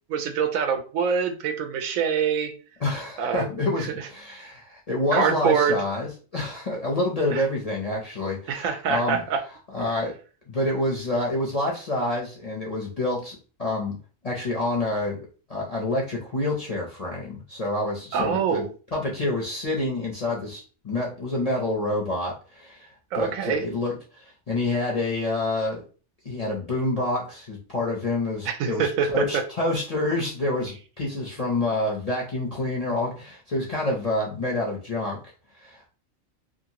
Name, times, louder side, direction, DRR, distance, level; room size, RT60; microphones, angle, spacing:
voice 1, 0.1-2.5 3.2-3.5 3.8-3.9 5.1-5.8 7.3-7.4 8.5-9.4 18.1-18.7 23.1-23.6 28.5-29.2, right 6 dB, 80° right, 6 dB, 1.0 m, -24 dB
voice 2, 2.8-9.2 9.7-10.1 10.5-14.0 14.2-22.9 23.1-25.8 26.2-35.2 35.5-35.9, left 2 dB, 45° left, -3 dB, 0.5 m, -28 dB
2.8 x 2.5 x 2.8 m, 0.37 s
omnidirectional pair, 1.4 m